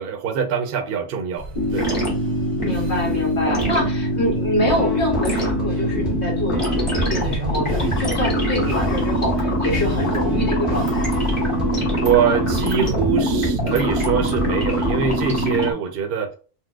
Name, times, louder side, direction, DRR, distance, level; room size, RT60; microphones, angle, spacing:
voice 1, 0.0-1.9 11.9-16.3, right 7 dB, 65° right, 0.7 m, -23 dB
sound 1, 1.4-15.4, right 2 dB, 85° right, 1.0 m, -36 dB
sound 2, 1.6-15.7, equal, 30° left, 1.0 m, -23 dB
voice 2, 2.6-6.6 6.9-11.2, equal, 70° left, 1.6 m, -26 dB
sound 3, 4.6-15.1, equal, ahead, 0.8 m, -30 dB
4.4 x 2.0 x 2.3 m
omnidirectional pair, 1.2 m